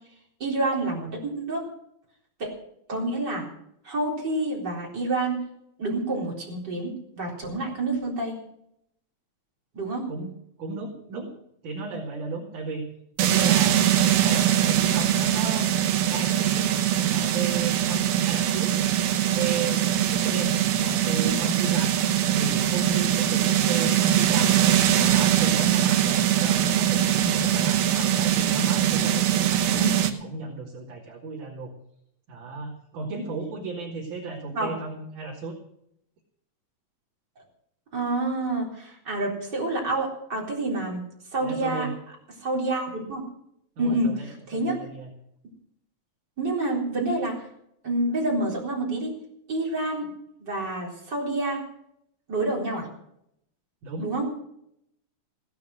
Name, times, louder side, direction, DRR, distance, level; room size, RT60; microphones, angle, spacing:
voice 1, 0.4-1.6 2.4-2.5 2.9-3.5 3.8-5.4 5.8-8.4 9.7-10.1 21.2-21.4 29.8-30.2 34.5-34.7 37.9-41.0 41.3-41.9 42.4-43.2 43.8-44.8 46.4-47.5 47.8-49.2 49.5-50.1 50.4-51.6 52.3-52.9 54.0-54.3, right 2 dB, 30° right, -2 dB, 4.3 m, -28 dB
voice 2, 10.6-11.3 11.6-12.8 13.2-13.8 14.1-15.7 16.1-16.7 17.0-18.7 19.4-22.0 22.3-24.6 25.0-31.7 32.3-35.6 41.4-41.9 43.8-44.3 44.5-45.1 53.8-54.1, right 3 dB, 60° right, -5 dB, 4.1 m, -34 dB
sound 1, 13.2-30.1, right 10 dB, 85° right, 3.0 m, -22 dB
17.5 x 10.5 x 6.4 m, 0.75 s
omnidirectional pair, 4.1 m